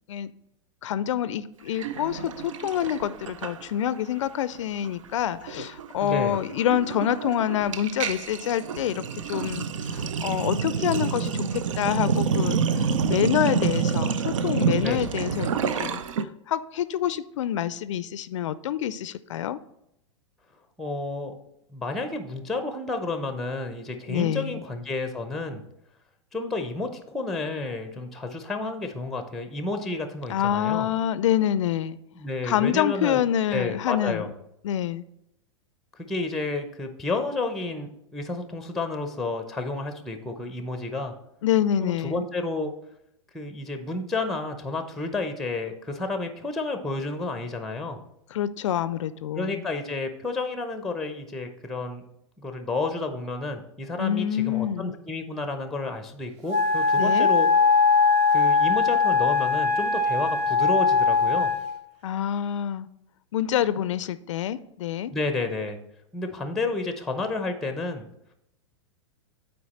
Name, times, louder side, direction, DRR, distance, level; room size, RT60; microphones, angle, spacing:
voice 1, 0.8-9.0 9.3-16.0 16.5-19.6 24.1-24.6 30.3-32.0 32.4-34.3 34.6-35.0 41.4-42.2 48.3-49.6 54.0-54.9 57.0-57.3 62.0-62.9 63.3-65.1, left 10 dB, 75° left, 16 dB, 0.4 m, -27 dB
Sink (filling or washing), 1.8-4.0 4.3-4.6 4.8-16.2, right 6 dB, 80° right, 0.5 m, -28 dB
voice 2, 6.0-6.4 14.8-15.0 20.8-21.3 21.7-25.6 26.3-30.9 32.1-33.2 33.5-34.3 35.9-41.1 41.8-42.7 43.3-48.0 49.3-52.0 52.4-57.5 58.3-61.5 65.1-65.8 66.1-68.1, left 3 dB, ahead, 7 dB, 0.6 m, -31 dB
Wind instrument woodwind instrument, 56.5-61.7, left 5 dB, 40° right, 1.2 m, -21 dB
8.5 x 4.4 x 4.2 m, 0.80 s
hypercardioid pair, 110°, 16 cm